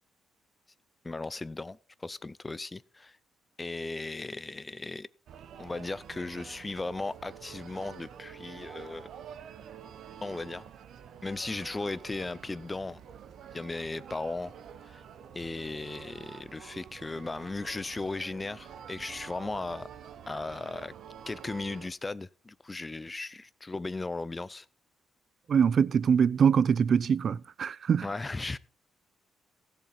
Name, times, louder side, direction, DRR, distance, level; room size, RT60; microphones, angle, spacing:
voice 1, 1.0-3.2 3.6-5.1 5.6-9.1 10.2-10.7 11.2-13.0 13.5-14.5 14.8-15.0 15.3-19.9 20.3-20.9 21.3-24.7 28.0-28.6, left 3 dB, 20° left, 0.5 m, -36 dB
sound 1, 5.3-21.9, right 8 dB, 70° right, 0.9 m, -48 dB
voice 2, 25.5-28.1, right 7 dB, 55° right, 0.4 m, -23 dB
16.0 x 7.1 x 4.1 m
cardioid pair, 90°, 0 cm